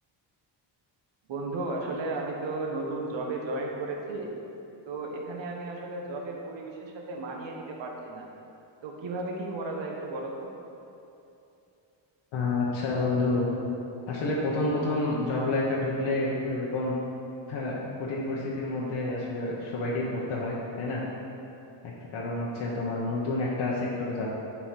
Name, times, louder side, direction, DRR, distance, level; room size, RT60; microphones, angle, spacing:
voice 1, 1.3-4.3 4.8-8.3 8.8-10.5, right 2 dB, 65° right, 0 dB, 1.3 m, -34 dB
voice 2, 12.3-13.5 14.1-17.0 17.5-21.0 21.8-24.3, left 2 dB, 80° left, -5 dB, 1.1 m, -29 dB
7.9 x 4.4 x 4.5 m, 2.8 s
cardioid pair, 85°, 48 cm